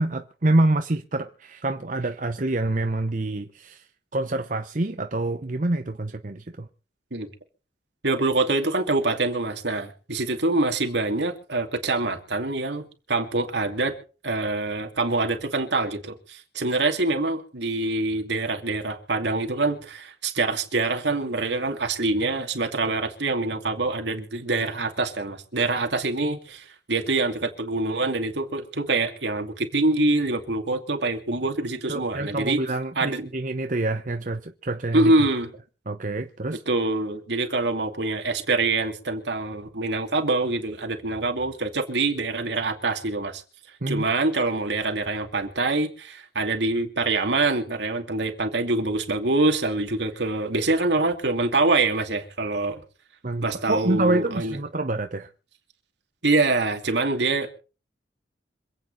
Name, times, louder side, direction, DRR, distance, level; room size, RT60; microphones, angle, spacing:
voice 1, 0.0-3.8 4.1-6.7 31.9-35.1 35.9-36.6 43.8-44.0 53.2-55.3, right 2 dB, 45° right, 0.9 m, -26 dB
voice 2, 8.0-13.9 14.2-32.6 33.0-33.3 34.9-35.5 36.7-43.4 43.9-52.8 53.4-54.6 56.2-57.5, right 2 dB, 75° right, 2.5 m, -25 dB
26.5 x 8.9 x 4.0 m
head